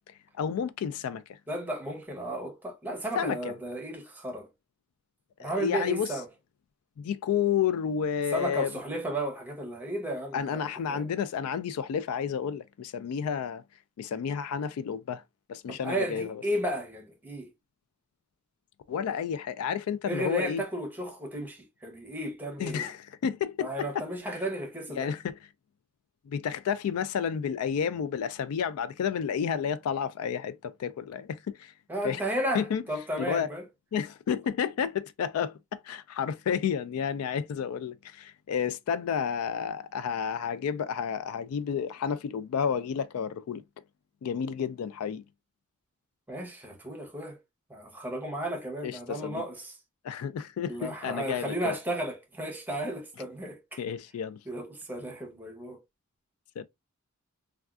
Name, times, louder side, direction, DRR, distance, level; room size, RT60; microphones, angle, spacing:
voice 1, 0.1-1.4 3.2-3.5 5.4-6.1 7.0-8.8 10.3-13.6 14.0-15.2 15.5-16.4 18.9-20.6 22.6-24.0 25.0-25.4 26.3-31.7 32.0-32.2 32.5-32.8 33.2-33.5 33.9-43.6 44.2-45.2 48.8-49.4 50.0-51.8 53.8-54.4 56.6-56.7, left 7 dB, 85° left, 0.3 m, -31 dB
voice 2, 1.5-4.5 5.4-6.3 8.3-10.6 10.9-11.1 15.7-17.5 20.1-22.9 23.6-25.1 31.9-33.6 46.3-47.4 47.7-49.7 50.7-53.8 54.5-55.8, right 1 dB, 10° right, 0.8 m, -34 dB
3.4 x 2.3 x 2.3 m
head